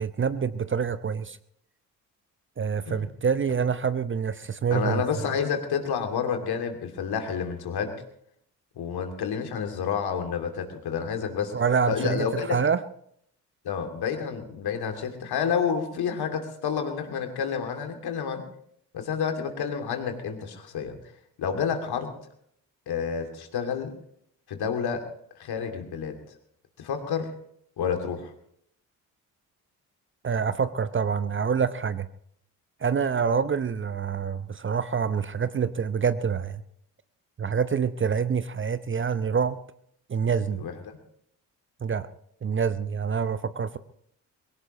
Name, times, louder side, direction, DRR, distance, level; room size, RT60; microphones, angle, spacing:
voice 1, 0.0-1.4 2.6-5.0 11.5-12.8 30.2-32.1 32.8-36.6 37.4-39.6 40.1-40.6 41.8-42.1 42.4-43.8, right 6 dB, 25° right, 14 dB, 0.8 m, -26 dB
voice 2, 4.7-7.9 8.8-11.5 11.9-12.6 13.6-18.4 18.9-21.0 21.4-22.1 22.9-23.9 24.5-25.1 25.4-26.2 26.8-27.3 27.8-28.3 40.5-41.0, left 7 dB, 55° left, 5 dB, 2.7 m, -29 dB
22.5 x 17.0 x 3.1 m, 0.69 s
figure-of-eight pair, 40°, 45 cm